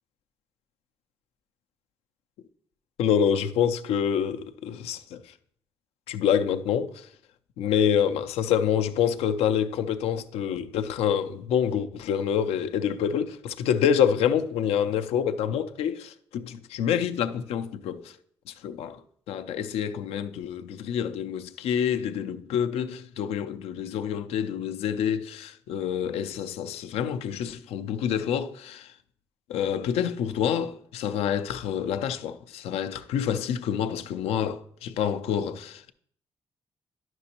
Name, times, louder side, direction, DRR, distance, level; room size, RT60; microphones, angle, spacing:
voice 1, 3.0-5.2 6.1-7.1 7.6-18.1 18.6-19.0 19.3-28.9 29.5-35.9, left 8 dB, 85° left, 0.4 m, -27 dB
9.8 x 6.1 x 2.8 m
cardioid pair, 70°, 10 cm